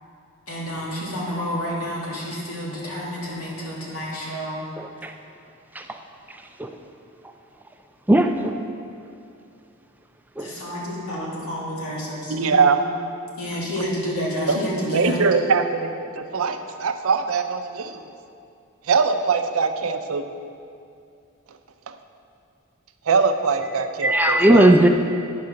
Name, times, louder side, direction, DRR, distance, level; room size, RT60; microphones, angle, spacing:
voice 1, 0.5-4.6 10.4-12.7 13.4-15.3, equal, 85° left, -5 dB, 2.3 m, -29 dB
voice 2, 4.8-5.1 5.8-6.0 6.6-6.7 8.1-8.5 10.4-10.5 24.0-24.9, right 1 dB, 10° right, 5 dB, 0.3 m, -17 dB
voice 3, 12.3-12.8 14.5-18.0 18.9-20.3 23.1-24.7, right 5 dB, 70° right, 8 dB, 0.5 m, -22 dB
9.5 x 4.7 x 6.4 m, 2.5 s
head